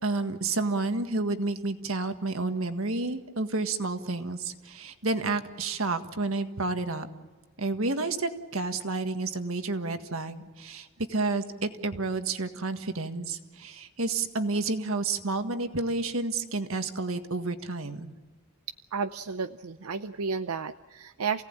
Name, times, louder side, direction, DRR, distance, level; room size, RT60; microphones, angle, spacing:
voice 1, 0.0-7.1 7.6-18.1, right 3 dB, 70° right, 7 dB, 1.7 m, -30 dB
voice 2, 18.9-21.4, right 5 dB, 85° right, 10 dB, 0.6 m, -32 dB
28.5 x 17.5 x 8.9 m, 1.4 s
head